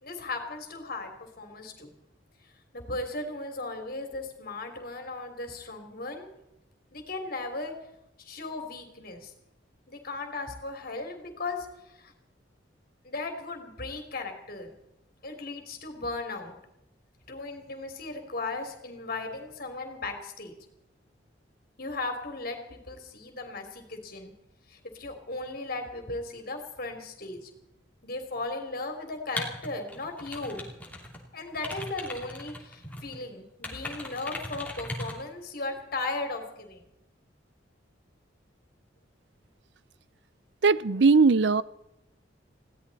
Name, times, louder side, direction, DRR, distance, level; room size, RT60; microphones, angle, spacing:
voice 1, 0.0-1.9 2.7-6.3 6.9-7.7 8.3-9.3 9.9-11.7 12.0-12.1 13.0-14.7 15.2-16.6 17.3-20.5 21.8-24.3 24.7-27.5 28.0-30.7 31.3-36.8, left 3 dB, 50° left, 3.2 m, -36 dB
sound 1, 29.3-31.2 31.5-33.2 33.6-35.2, left 1 dB, 10° left, 2.8 m, -38 dB
voice 2, 40.6-41.6, right 4 dB, 65° right, 0.6 m, -19 dB
21.0 x 16.5 x 4.2 m
head